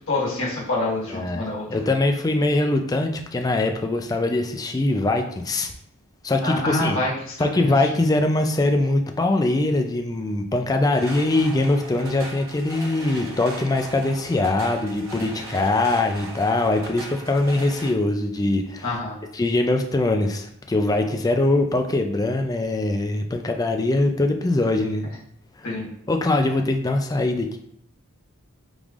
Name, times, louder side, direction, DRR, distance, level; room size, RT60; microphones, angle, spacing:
voice 1, 0.0-1.8 6.4-7.7 18.8-19.2 25.6-25.9, left 2 dB, 65° left, -6 dB, 1.7 m, -27 dB
voice 2, 1.1-5.7 6.2-7.0 7.4-18.9 19.3-25.1 25.6-25.7 26.1-27.6, left 2 dB, 15° left, 4 dB, 0.3 m, -22 dB
Metal chair, 10.9-17.9, right 1 dB, 60° right, 0.8 m, -38 dB
5.2 x 3.2 x 2.5 m, 0.69 s
head